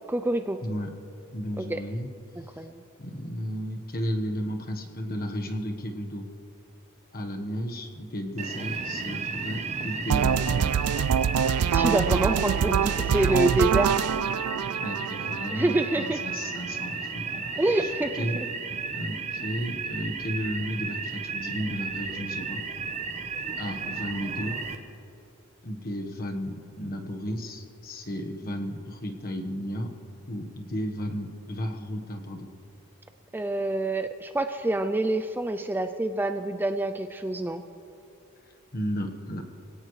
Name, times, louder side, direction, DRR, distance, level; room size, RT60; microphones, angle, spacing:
voice 1, 0.1-0.6 1.6-1.8 2.6-2.8 11.7-14.0 15.5-16.2 17.6-18.2 33.3-37.6, right 1 dB, 10° right, 9 dB, 0.3 m, -26 dB
voice 2, 1.3-2.1 3.0-6.2 7.1-10.7 14.8-17.9 18.2-18.4 18.9-22.6 23.6-24.6 25.6-29.9 30.3-32.5 38.7-39.4, equal, 40° left, 3 dB, 1.3 m, -33 dB
sound 1, 8.4-24.8, right 4 dB, 30° right, 0.9 m, -34 dB
sound 2, 10.1-16.1, right 7 dB, 85° right, 0.4 m, -25 dB
25.0 x 17.5 x 3.2 m, 2.7 s
head